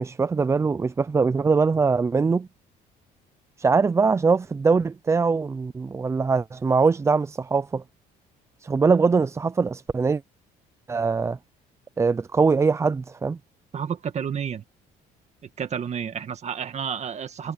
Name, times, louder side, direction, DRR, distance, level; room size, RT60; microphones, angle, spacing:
voice 1, 0.0-2.5 3.6-7.8 8.6-10.2 10.9-11.4 12.0-13.4, right 4 dB, 15° right, 0.3 m, -22 dB
voice 2, 13.7-14.6 15.6-17.5, right 7 dB, 40° right, 1.7 m, -30 dB
cardioid pair, 110°, 17 cm